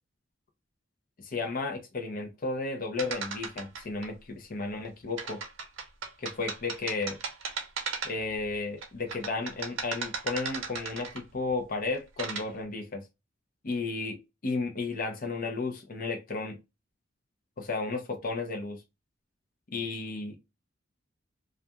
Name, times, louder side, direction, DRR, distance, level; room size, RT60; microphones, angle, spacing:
voice 1, 1.2-5.4 6.2-7.2 8.0-13.0 13.6-16.6 17.6-18.8 19.7-20.3, left 3 dB, 45° left, 0.6 m, -33 dB
sound 1, 3.0-4.1 5.2-8.4 8.8-11.4 11.9-12.5, right 5 dB, 80° right, 0.7 m, -36 dB
2.4 x 2.3 x 2.7 m
head